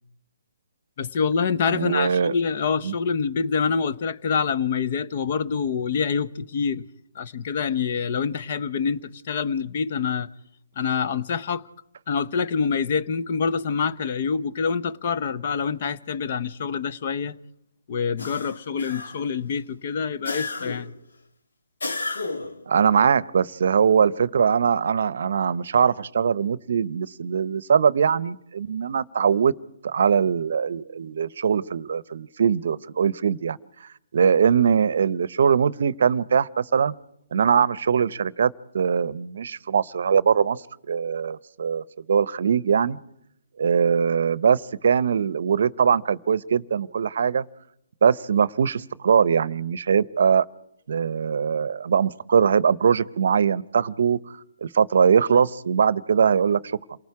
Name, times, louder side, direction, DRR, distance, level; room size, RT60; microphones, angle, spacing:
voice 1, 1.0-6.9 7.1-10.3 10.8-11.6 12.1-17.3 17.9-20.9, left 6 dB, 45° left, 0.9 m, -26 dB
voice 2, 1.7-2.3 2.8-2.9 22.7-29.5 29.8-36.9 37.3-43.0 43.6-47.4 48.0-50.4 50.9-56.6, right 7 dB, 60° right, 0.7 m, -21 dB
sound 1, 18.2-19.4 20.2-21.0 21.8-22.6, left 3 dB, 80° left, 2.0 m, -32 dB
28.0 x 19.0 x 4.8 m
hypercardioid pair, 145°, 0 cm